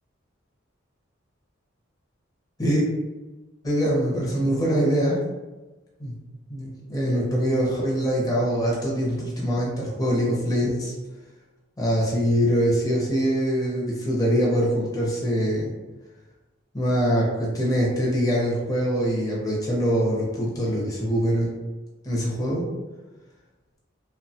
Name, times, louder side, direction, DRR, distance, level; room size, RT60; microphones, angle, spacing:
voice 1, 3.6-5.2 6.0-6.1 6.5-10.9 11.8-15.7 16.7-21.5 22.0-22.6, equal, 20° left, -5 dB, 0.6 m, -23 dB
3.0 x 2.1 x 2.7 m, 1.2 s
head